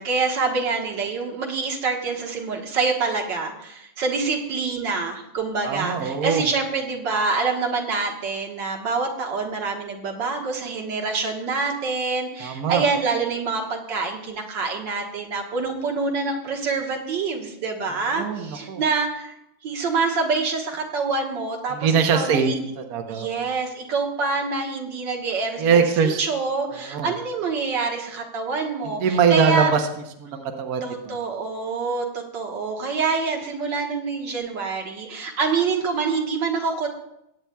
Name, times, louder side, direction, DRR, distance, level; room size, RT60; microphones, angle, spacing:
voice 1, 0.0-19.3 19.6-22.6 23.1-29.7 30.8-36.9, right 4 dB, 80° right, 1 dB, 2.1 m, -26 dB
voice 2, 5.6-6.5 12.4-12.8 18.1-18.8 21.7-23.5 25.6-26.2 26.7-27.1 29.0-29.9 30.2-31.1, right 6 dB, 60° right, 4 dB, 1.3 m, -22 dB
20.5 x 8.8 x 2.3 m, 0.83 s
omnidirectional pair, 2.0 m